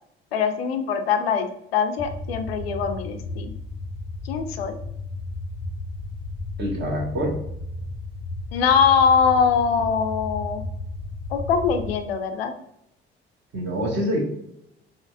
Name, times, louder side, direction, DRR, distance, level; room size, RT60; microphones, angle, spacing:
voice 1, 0.3-3.5 4.2-4.8 8.5-10.6 11.3-12.5, left 6 dB, 80° left, 7 dB, 0.5 m, -22 dB
sound 1, 2.0-12.0, left 3 dB, 15° left, 0.5 m, -34 dB
voice 2, 6.6-7.4 13.5-14.2, equal, 35° right, -2 dB, 1.3 m, -25 dB
4.2 x 3.1 x 2.5 m, 0.78 s
figure-of-eight pair, 50°, 30 cm